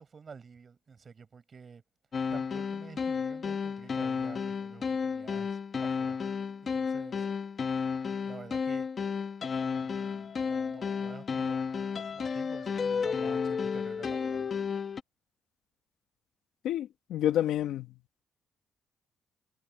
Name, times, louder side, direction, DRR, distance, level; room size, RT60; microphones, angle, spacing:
voice 1, 0.0-1.8 2.3-6.2 6.6-7.3 8.2-8.9 9.6-11.6 12.1-14.5, right 5 dB, 40° right, 7.4 m, -50 dB
sound 1, 2.1-15.0, left 6 dB, 45° left, 1.5 m, -32 dB
voice 2, 16.6-17.9, left 11 dB, 80° left, 1.3 m, -29 dB
cardioid pair, 90°, 0 cm